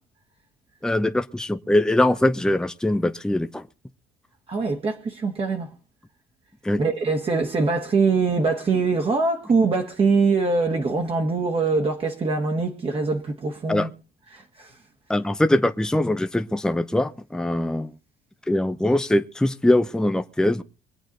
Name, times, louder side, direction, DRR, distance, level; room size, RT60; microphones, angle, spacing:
voice 1, 0.8-3.7 6.6-6.8 13.7-13.9 15.1-17.9 18.5-20.6, left 1 dB, 5° left, 0.7 m, -22 dB
voice 2, 4.5-5.7 6.8-13.9 14.3-14.7, right 4 dB, 35° right, 1.5 m, -23 dB
24.0 x 8.2 x 3.9 m
cardioid pair, 110°, 17 cm